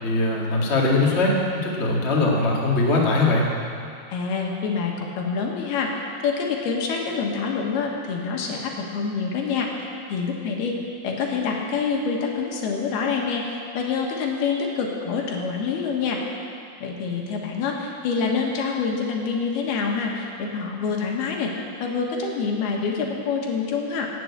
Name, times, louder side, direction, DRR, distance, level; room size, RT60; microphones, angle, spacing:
voice 1, 0.0-1.3 1.6-3.5, left 2 dB, 30° left, -4 dB, 1.2 m, -21 dB
voice 2, 4.1-5.9 6.2-9.7 10.1-10.8 11.0-16.2 16.8-21.5 21.8-24.1, left 5 dB, 70° left, 0 dB, 3.3 m, -26 dB
16.5 x 7.7 x 8.6 m, 2.3 s
omnidirectional pair, 4.9 m